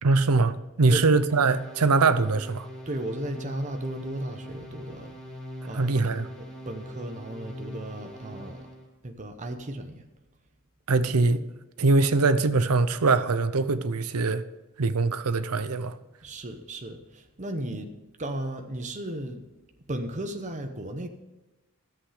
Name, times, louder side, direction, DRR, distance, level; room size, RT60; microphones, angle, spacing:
voice 1, 0.0-2.7 5.7-6.3 10.9-11.4 11.8-14.4 14.8-16.0, right 3 dB, 90° right, 0.7 m, -22 dB
voice 2, 0.9-1.2 2.9-5.1 5.7-8.7 9.0-10.1 16.2-19.5 19.9-21.1, right 1 dB, 35° right, 0.9 m, -35 dB
sound 1, 1.3-8.9, left 1 dB, 5° left, 2.8 m, -42 dB
13.5 x 8.0 x 5.0 m
head